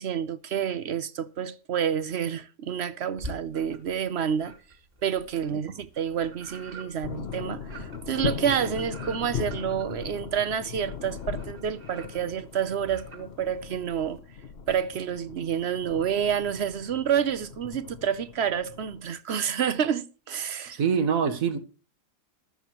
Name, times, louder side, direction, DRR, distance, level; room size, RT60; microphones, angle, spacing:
voice 1, 0.0-4.5 5.0-14.2 14.7-20.8, right 8 dB, 65° right, 0.6 m, -29 dB
sound 1, 3.2-4.0 4.4-14.2, right 1 dB, 30° right, 3.5 m, -46 dB
sound 2, 7.0-19.0, left 7 dB, 45° left, 0.9 m, -38 dB
voice 2, 20.7-21.6, right 6 dB, 50° right, 1.7 m, -25 dB
14.5 x 13.0 x 3.0 m
omnidirectional pair, 2.0 m